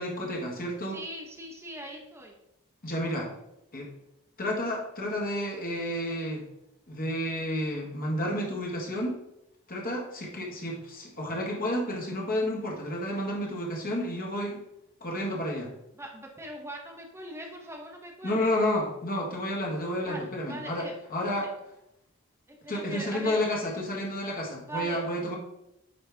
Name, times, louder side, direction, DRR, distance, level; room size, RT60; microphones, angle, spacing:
voice 1, 0.0-1.0 2.8-3.3 3.7-3.9 4.4-6.4 6.9-9.1 9.7-14.6 15.0-15.7 18.2-21.5 22.7-25.4, left 1 dB, 40° left, -1 dB, 1.5 m, -31 dB
voice 2, 0.9-2.3 15.9-18.5 20.0-20.2 20.5-21.5 22.5-23.4 24.7-25.0, right 1 dB, 10° right, 1 dB, 1.0 m, -41 dB
9.5 x 3.2 x 3.4 m, 0.84 s
head